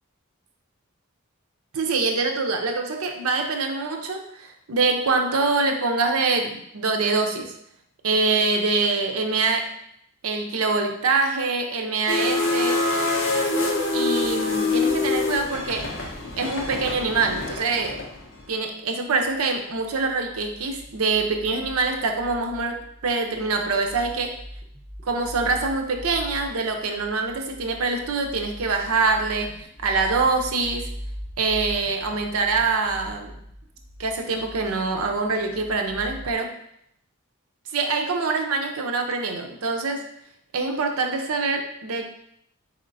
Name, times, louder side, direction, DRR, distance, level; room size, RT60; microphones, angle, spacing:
voice 1, 1.7-7.5 8.0-9.7 10.2-12.8 13.9-15.9 16.4-18.0 18.5-22.8 23.0-24.3 25.1-30.9 31.4-33.3 34.0-36.5 37.7-40.1 40.5-42.1, right 3 dB, 80° right, 3 dB, 0.6 m, -24 dB
sound 1, 12.1-18.4, left 3 dB, 60° left, 0.8 m, -25 dB
sound 2, 19.2-36.3, equal, 50° right, 0.9 m, -41 dB
4.3 x 4.2 x 2.6 m, 0.72 s
head